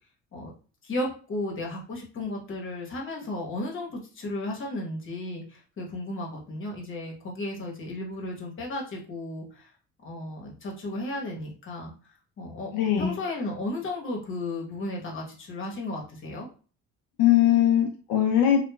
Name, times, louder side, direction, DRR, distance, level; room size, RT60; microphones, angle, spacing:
voice 1, 0.8-9.7 10.0-11.9 12.4-16.5, left 2 dB, 40° left, -1 dB, 1.0 m, -34 dB
voice 2, 12.7-13.2 17.2-18.6, left 11 dB, 85° left, 3 dB, 0.5 m, -21 dB
2.9 x 2.2 x 2.2 m, 0.38 s
cardioid pair, 95°, 31 cm